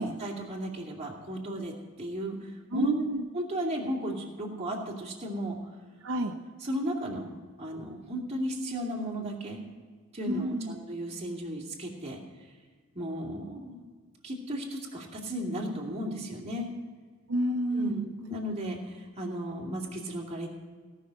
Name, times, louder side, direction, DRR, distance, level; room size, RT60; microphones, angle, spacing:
voice 1, 0.0-2.9 3.3-5.6 6.6-7.3 7.6-9.6 10.1-12.2 12.9-13.8 14.2-16.7 17.7-20.5, equal, 30° right, -1 dB, 2.5 m, -34 dB
voice 2, 2.7-3.2 6.0-6.3 10.3-10.8 17.3-18.0, right 1 dB, 65° right, 3 dB, 0.8 m, -29 dB
17.5 x 6.3 x 6.4 m, 1.5 s
head